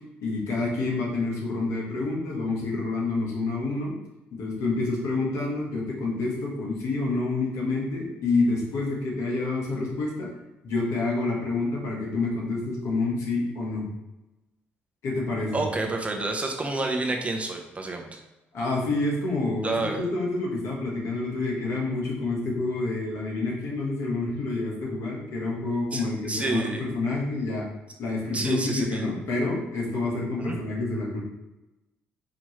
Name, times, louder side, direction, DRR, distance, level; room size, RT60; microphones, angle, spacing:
voice 1, 0.2-3.9 4.3-10.3 10.6-13.9 15.0-15.6 18.5-27.6 28.0-31.2, left 3 dB, 75° left, -3 dB, 1.4 m, -28 dB
voice 2, 15.5-18.1 19.6-20.0 25.9-26.9 28.3-29.1 30.4-30.6, right 2 dB, 25° right, 3 dB, 0.8 m, -29 dB
4.9 x 3.0 x 3.2 m, 1.0 s
supercardioid pair, 65°, 5 cm